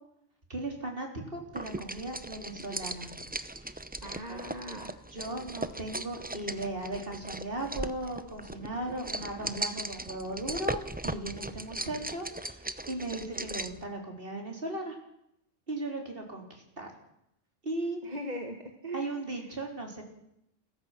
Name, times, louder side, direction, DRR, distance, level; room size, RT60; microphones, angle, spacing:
voice 1, 0.5-3.1 3.6-3.7 4.3-4.4 5.1-15.0 15.7-16.9 17.6-18.0 18.9-20.0, right 2 dB, 50° right, 2 dB, 4.4 m, -37 dB
sound 1, 1.5-13.8, right 1 dB, 10° right, 0.6 m, -38 dB
voice 2, 4.0-4.9 18.0-19.1, equal, 35° right, 3 dB, 2.0 m, -39 dB
29.0 x 15.0 x 6.0 m, 0.78 s
omnidirectional pair, 1.2 m